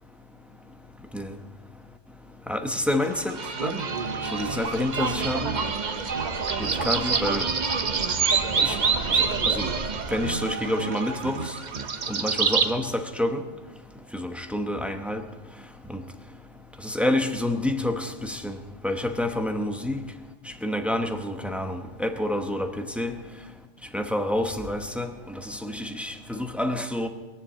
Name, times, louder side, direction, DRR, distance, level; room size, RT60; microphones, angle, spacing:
voice 1, 2.5-3.8 4.3-5.6 6.6-7.5 8.6-8.8 9.1-9.7 10.1-11.5 12.1-13.4 14.1-15.2 15.9-16.0 16.8-18.6 18.8-20.0 20.6-23.2 23.9-27.1, left 1 dB, ahead, 6 dB, 0.8 m, -28 dB
sound 1, 3.0-12.7, right 5 dB, 40° right, 0.9 m, -27 dB
21.0 x 7.3 x 7.6 m, 1.2 s
omnidirectional pair, 1.3 m